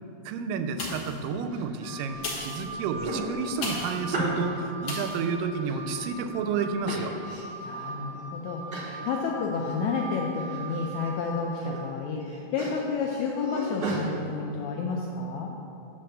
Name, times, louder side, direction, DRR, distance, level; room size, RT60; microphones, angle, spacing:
voice 1, 0.3-7.2, right 5 dB, 85° right, 8 dB, 2.2 m, -31 dB
sound 1, 0.8-1.3 2.1-4.1 4.8-5.2 5.8-5.9, left 2 dB, 65° left, 1.2 m, -36 dB
sound 2, 1.5-2.3 2.6-4.6 5.1-6.3 6.8-7.7 8.1-8.2 8.7-9.0 9.4-10.1 10.4-10.9 11.3-11.8 12.1-14.0, right 2 dB, 65° right, 1.0 m, -35 dB
Wind instrument woodwind instrument, 1.8-11.5, right 2 dB, 25° left, 1.4 m, -40 dB
voice 2, 7.6-15.5, left 4 dB, 80° left, 0 dB, 1.7 m, -31 dB
7.7 x 4.5 x 6.5 m, 2.8 s
omnidirectional pair, 3.8 m